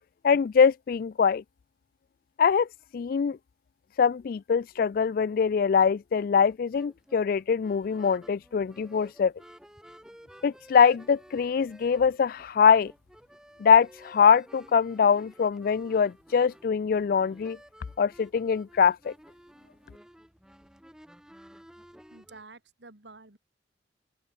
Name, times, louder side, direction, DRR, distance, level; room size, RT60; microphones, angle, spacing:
voice 1, 0.2-1.4 2.4-2.7 2.9-3.4 4.0-9.3 10.4-12.9 13.6-17.6 18.0-19.1, left 6 dB, 50° left, 0.3 m, -23 dB
sound 1, 5.8-22.4, equal, 5° right, 1.0 m, -53 dB
voice 2, 22.1-23.4, right 3 dB, 75° right, 2.5 m, -50 dB
open air
head